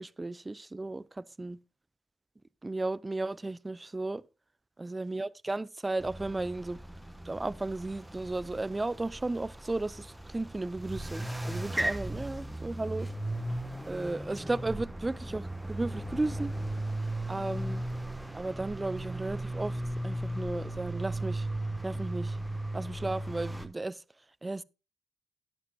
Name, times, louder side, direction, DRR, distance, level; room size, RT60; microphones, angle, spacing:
voice 1, 0.0-1.6 2.6-4.2 4.8-6.8 7.2-13.1 13.9-16.5 17.3-17.8 18.3-21.5 21.8-22.4 22.7-24.0 24.4-24.6, right 2 dB, 20° right, 0.5 m, -34 dB
sound 1, 6.0-23.7, right 1 dB, 5° right, 1.2 m, -36 dB
12.0 x 11.0 x 2.3 m
hypercardioid pair, 45°, 0 cm